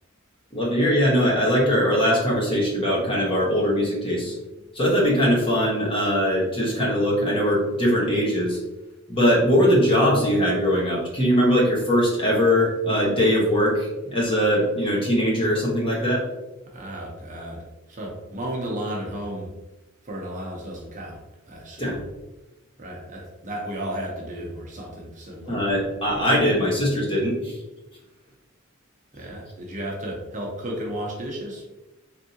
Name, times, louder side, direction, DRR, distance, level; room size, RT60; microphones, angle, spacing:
voice 1, 0.5-4.4 4.7-8.6 9.1-16.2 21.8-22.0 25.5-27.6, equal, 25° left, -4 dB, 1.1 m, -21 dB
voice 2, 16.7-19.5 20.0-21.2 21.5-22.0 22.8-25.8 29.1-31.6, right 1 dB, 35° right, -1 dB, 0.9 m, -33 dB
4.1 x 3.6 x 2.8 m, 1.0 s
head